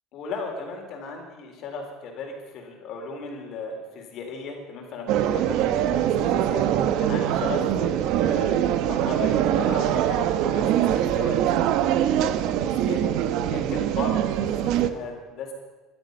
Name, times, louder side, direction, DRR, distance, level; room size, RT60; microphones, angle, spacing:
voice 1, 0.1-15.5, left 4 dB, 50° left, 2 dB, 4.0 m, -36 dB
sound 1, 5.1-14.9, right 10 dB, 60° right, 1.0 m, -23 dB
21.0 x 12.5 x 5.4 m, 1.3 s
cardioid pair, 160°, 0 cm